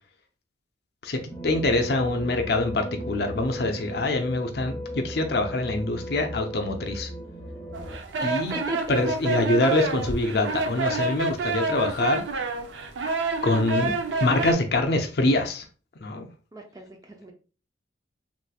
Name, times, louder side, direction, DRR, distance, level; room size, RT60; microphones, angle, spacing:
voice 1, 1.0-4.8 5.0-7.1 8.2-8.5 8.9-12.2 13.4-13.9 14.2-15.6 16.0-16.3, left 2 dB, 60° left, 4 dB, 0.5 m, -25 dB
sound 1, 1.3-8.0, equal, 15° left, 0.7 m, -36 dB
sound 2, 7.7-14.5, right 3 dB, 85° right, 0.5 m, -28 dB
voice 2, 8.2-9.3 16.5-17.3, equal, 20° right, 3 dB, 0.4 m, -37 dB
3.2 x 3.0 x 2.2 m, 0.36 s
head